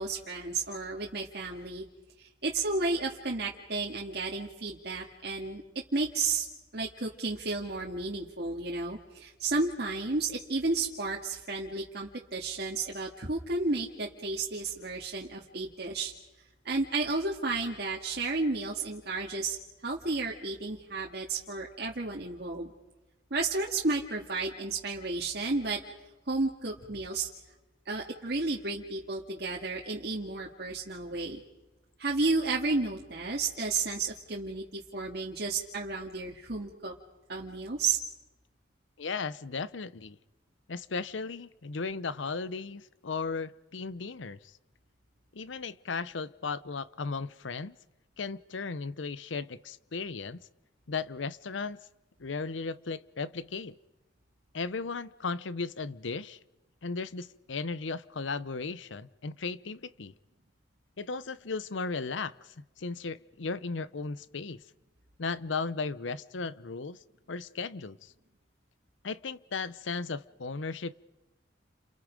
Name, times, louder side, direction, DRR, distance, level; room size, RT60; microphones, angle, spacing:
voice 1, 0.0-1.8 2.2-5.6 5.9-6.5 6.7-16.1 16.6-19.6 19.8-22.7 23.3-25.8 26.3-27.3 27.9-31.4 32.0-36.9 37.3-38.0, right 3 dB, 60° right, 2.0 m, -32 dB
voice 2, 39.0-40.2 40.7-44.4 45.3-47.8 48.2-50.4 50.9-51.8 52.2-53.8 54.5-56.4 56.8-60.1 61.0-64.6 65.2-67.0 67.3-68.1 69.0-70.9, left 4 dB, 85° left, 0.7 m, -36 dB
30.0 x 28.0 x 5.2 m
head